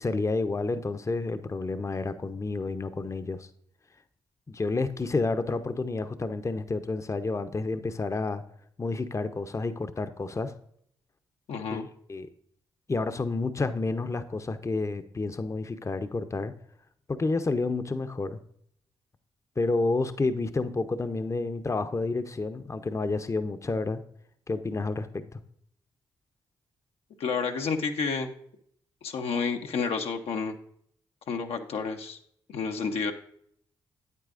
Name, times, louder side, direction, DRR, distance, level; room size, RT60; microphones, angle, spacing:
voice 1, 0.0-3.5 4.5-8.4 8.8-10.5 11.7-11.8 12.1-12.3 12.9-16.5 17.1-18.4 19.6-24.0 24.5-25.4, left 3 dB, 30° left, 10 dB, 0.7 m, -30 dB
voice 2, 11.5-11.9 27.2-28.3 29.0-30.6 31.3-32.2 32.5-33.1, left 5 dB, 70° left, 4 dB, 0.8 m, -30 dB
8.8 x 8.3 x 2.5 m, 0.67 s
hypercardioid pair, 45°, 10 cm